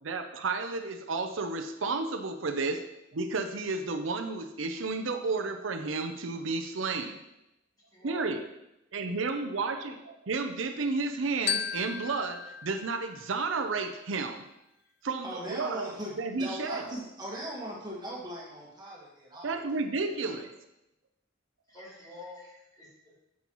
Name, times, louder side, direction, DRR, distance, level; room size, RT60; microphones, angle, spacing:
voice 1, 0.0-2.8 3.1-7.2 8.0-8.4 8.9-14.4 15.0-15.9 16.2-16.8 19.4-20.5, right 3 dB, 75° right, 6 dB, 0.6 m, -32 dB
voice 2, 7.9-8.2 9.1-9.2 20.0-20.4 21.7-23.1, left 2 dB, 20° left, -7 dB, 3.2 m, -49 dB
Glockenspiel, 11.5-13.9, left 8 dB, 55° left, 0.4 m, -36 dB
voice 3, 15.2-19.6, equal, 20° right, -4 dB, 1.6 m, -39 dB
9.2 x 7.5 x 3.1 m, 0.89 s
head